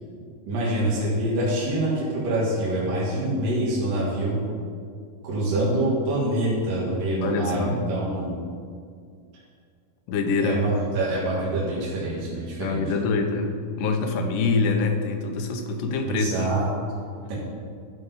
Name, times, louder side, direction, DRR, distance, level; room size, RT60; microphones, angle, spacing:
voice 1, 0.5-4.4 5.2-8.4 10.4-12.8 16.0-16.6 17.3-17.4, right 1 dB, 65° right, -7 dB, 3.2 m, -25 dB
voice 2, 7.2-7.8 10.1-10.7 12.6-16.5, left 4 dB, 75° left, 4 dB, 2.3 m, -25 dB
13.0 x 5.1 x 5.5 m, 2.2 s
omnidirectional pair, 4.2 m